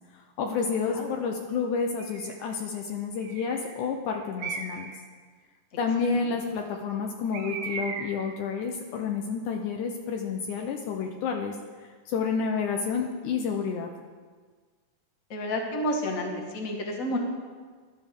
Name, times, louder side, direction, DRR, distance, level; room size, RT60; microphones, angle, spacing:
voice 1, 0.4-4.9 5.8-13.9, left 5 dB, 75° left, 2 dB, 2.0 m, -30 dB
Bird, 2.0-2.4 3.2-3.8 4.4-5.0 7.3-8.3, right 5 dB, 80° right, 2.7 m, -37 dB
voice 2, 15.3-17.2, left 1 dB, 50° left, 1 dB, 1.0 m, -30 dB
15.5 x 12.0 x 3.6 m, 1.5 s
omnidirectional pair, 3.9 m